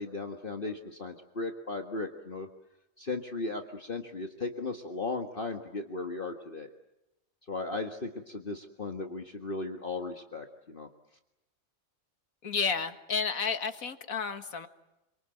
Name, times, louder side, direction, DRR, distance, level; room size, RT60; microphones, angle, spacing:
voice 1, 0.0-2.5 3.0-6.7 7.5-10.9, left 3 dB, 40° left, 4 dB, 1.8 m, -36 dB
voice 2, 12.4-14.7, left 5 dB, 80° left, 8 dB, 2.1 m, -31 dB
28.0 x 25.5 x 7.8 m, 0.94 s
omnidirectional pair, 1.5 m